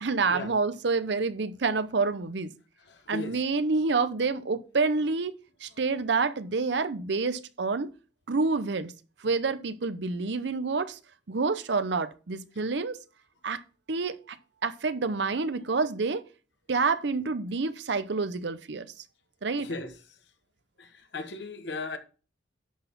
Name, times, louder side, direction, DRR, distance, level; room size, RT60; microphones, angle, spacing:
voice 1, 0.0-2.5 3.1-5.3 5.6-7.9 8.3-8.9 9.2-11.0 11.3-13.0 13.4-13.6 13.9-14.4 14.6-16.2 16.7-18.9 19.4-19.7, right 4 dB, 65° right, 0.7 m, -28 dB
voice 2, 2.9-3.4 19.6-19.9 20.8-22.0, left 3 dB, 65° left, 1.3 m, -36 dB
11.0 x 4.2 x 5.3 m
head